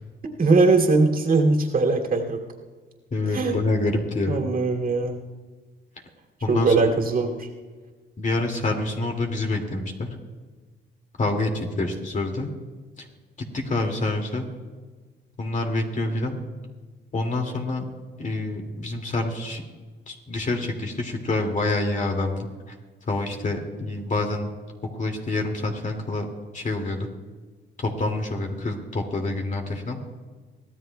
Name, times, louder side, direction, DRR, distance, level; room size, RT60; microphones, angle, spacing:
voice 1, 0.4-2.4 3.3-3.6 4.3-5.2 6.5-7.5, right 3 dB, 45° right, 1 dB, 2.7 m, -20 dB
voice 2, 3.1-4.4 6.4-6.9 8.2-10.1 11.2-12.5 13.4-14.5 15.4-16.4 17.1-17.8 18.2-19.6 20.1-22.7 23.1-24.5 25.0-26.2 26.5-27.1 27.8-30.0, left 2 dB, 40° left, 2 dB, 2.4 m, -27 dB
24.0 x 16.0 x 2.3 m, 1.4 s
cardioid pair, 90°, 20 cm